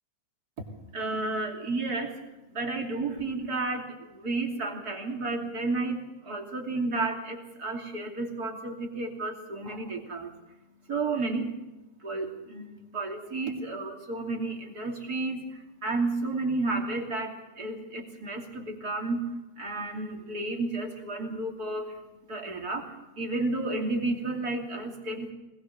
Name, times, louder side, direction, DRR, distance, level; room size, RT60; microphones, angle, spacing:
voice 1, 0.6-2.2 2.5-10.3 10.9-11.5 12.0-22.0 22.3-25.3, right 3 dB, 65° right, 2 dB, 3.5 m, -32 dB
21.5 x 20.5 x 6.6 m, 1.0 s
omnidirectional pair, 1.7 m